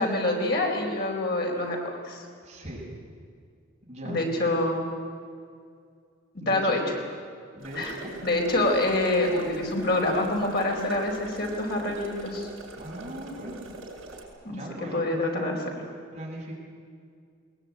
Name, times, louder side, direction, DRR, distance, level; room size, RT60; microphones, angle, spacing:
voice 1, 0.0-2.2 4.0-4.8 6.5-6.8 7.8-8.0 8.2-12.5 14.4-15.6, left 2 dB, 50° left, 0 dB, 4.6 m, -26 dB
voice 2, 2.4-2.9 3.9-4.2 6.4-6.8 7.5-8.1 12.8-13.6 14.5-15.6 16.1-16.6, right 1 dB, 30° right, -5 dB, 6.8 m, -39 dB
sound 1, 7.6-14.2, right 2 dB, 80° right, 6.6 m, -43 dB
20.5 x 20.0 x 9.2 m, 2.2 s
head